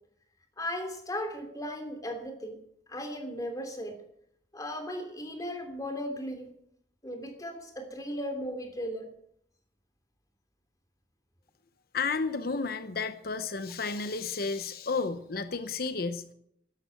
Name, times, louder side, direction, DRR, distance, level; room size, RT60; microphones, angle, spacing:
voice 1, 0.6-2.6 2.9-4.0 4.5-6.5 7.0-9.1, equal, 20° left, 5 dB, 3.1 m, -36 dB
voice 2, 11.9-16.3, left 4 dB, 60° left, 10 dB, 0.9 m, -32 dB
13.0 x 11.5 x 9.1 m, 0.71 s
head